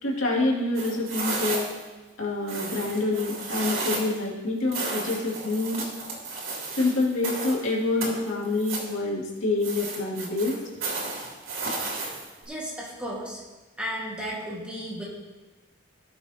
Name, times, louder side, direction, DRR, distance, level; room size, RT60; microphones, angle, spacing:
voice 1, 0.0-1.7 2.2-5.8 6.7-10.6, left 2 dB, 80° left, -4 dB, 2.5 m, -27 dB
sound 1, 0.7-1.9 2.5-4.2 4.7-7.6 8.0-8.9 9.6-12.4, right 3 dB, 85° right, 2.9 m, -33 dB
voice 2, 12.5-13.4 13.8-15.0, equal, 5° right, -5 dB, 1.8 m, -34 dB
18.0 x 6.9 x 2.9 m, 1.2 s
head